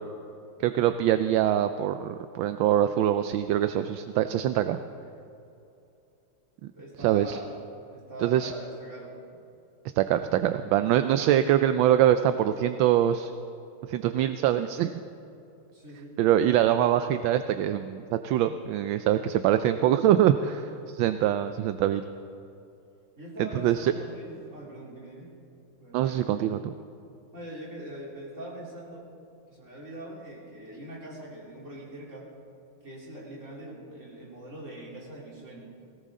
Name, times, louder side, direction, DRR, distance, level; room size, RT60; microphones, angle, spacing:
voice 1, 0.6-4.8 6.6-6.7 7.0-7.4 8.2-8.5 10.0-13.3 13.9-14.9 16.2-22.0 23.4-23.9 25.9-26.7, right 11 dB, 75° right, 10 dB, 1.2 m, -24 dB
voice 2, 6.7-7.6 7.9-9.4 10.0-10.6 15.7-16.2 23.2-25.3 25.8-26.4 27.3-29.1 29.5-32.3 32.8-35.8, right 1 dB, 35° right, -4 dB, 3.6 m, -43 dB
19.5 x 17.5 x 3.7 m, 2.8 s
omnidirectional pair, 2.4 m